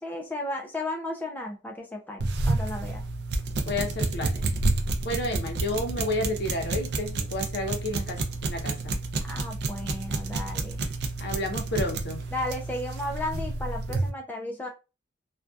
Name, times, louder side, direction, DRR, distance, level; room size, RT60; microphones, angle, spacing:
voice 1, 0.0-3.0 9.3-10.8 12.3-14.7, left 1 dB, 10° left, 1 dB, 0.3 m, -34 dB
sound 1, 2.2-14.1, right 2 dB, 60° right, 0.4 m, -30 dB
voice 2, 3.7-4.5 5.0-8.9 11.2-12.2, left 1 dB, 60° left, 3 dB, 0.7 m, -31 dB
2.5 x 2.2 x 2.3 m, 0.29 s
head